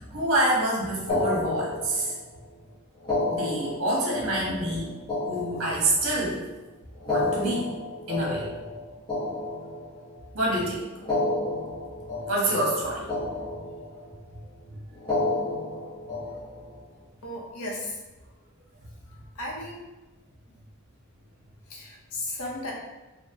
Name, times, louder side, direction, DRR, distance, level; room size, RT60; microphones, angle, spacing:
voice 1, 0.0-2.1 3.3-4.9 5.3-6.4 7.0-7.7 8.1-8.5 10.3-10.9 12.3-13.2 14.6-14.8, right 1 dB, 65° right, -4 dB, 1.1 m, -27 dB
sound 1, 1.1-2.3 3.0-6.3 7.0-10.3 11.0-12.8 13.1-14.2 15.0-16.8, left 2 dB, 20° left, 1.0 m, -31 dB
voice 2, 17.2-18.0 19.3-19.8 21.7-22.7, left 1 dB, 85° left, -1 dB, 0.8 m, -35 dB
4.2 x 2.0 x 2.8 m, 1.1 s
head